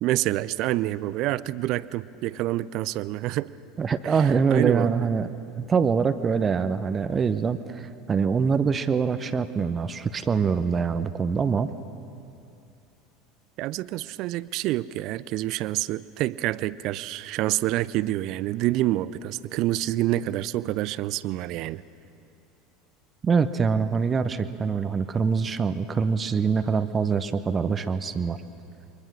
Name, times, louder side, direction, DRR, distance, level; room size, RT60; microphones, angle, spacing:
voice 1, 0.0-3.5 4.0-4.9 13.6-21.8, right 15 dB, 50° right, 19 dB, 0.5 m, -27 dB
voice 2, 3.8-11.7 23.2-28.4, right 5 dB, 25° right, 11 dB, 0.9 m, -24 dB
28.5 x 23.5 x 6.4 m, 2.6 s
figure-of-eight pair, 75°, 0 cm